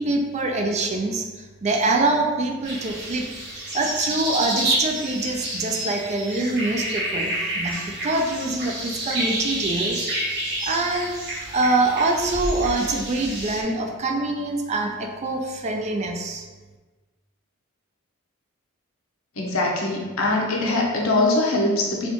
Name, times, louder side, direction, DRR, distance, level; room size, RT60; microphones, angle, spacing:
voice 1, 0.0-3.3 3.7-10.1 10.6-11.2 11.5-16.5, right 2 dB, 35° right, 3 dB, 0.3 m, -25 dB
sound 1, 2.6-13.6, right 1 dB, 60° right, 1.0 m, -29 dB
voice 2, 19.4-22.1, left 2 dB, 80° left, -2 dB, 0.7 m, -22 dB
4.2 x 2.3 x 2.9 m, 1.3 s
head